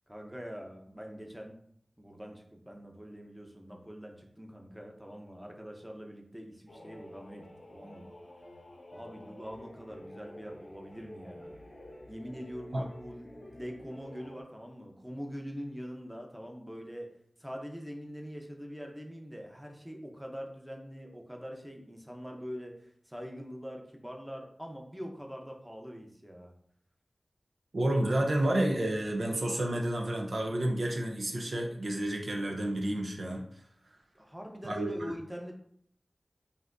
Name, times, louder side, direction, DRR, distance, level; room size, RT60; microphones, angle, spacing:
voice 1, 0.1-1.6 2.0-8.1 8.9-11.5 12.1-17.1 17.4-26.5 34.1-35.6, equal, 5° right, 1 dB, 0.8 m, -44 dB
sound 1, 6.7-14.4, left 1 dB, 90° left, 0.8 m, -50 dB
voice 2, 27.7-33.6 34.6-35.1, right 1 dB, 70° right, 1 dB, 0.6 m, -30 dB
5.6 x 2.7 x 2.6 m, 0.67 s
wide cardioid pair, 55°, 0 cm